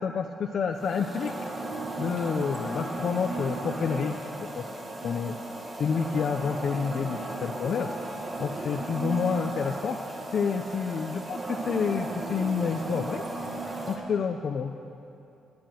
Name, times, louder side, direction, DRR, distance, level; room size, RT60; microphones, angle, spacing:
voice 1, 0.0-1.3 2.0-4.3 4.6-4.7 5.0-5.4 5.8-7.9 8.4-10.0 10.3-13.2 13.9-14.7, left 6 dB, 60° left, 5 dB, 0.6 m, -29 dB
sound 1, 0.7-14.0, right 2 dB, 40° right, 2.0 m, -35 dB
12.5 x 8.6 x 7.6 m, 2.7 s
cardioid pair, 85°, 0 cm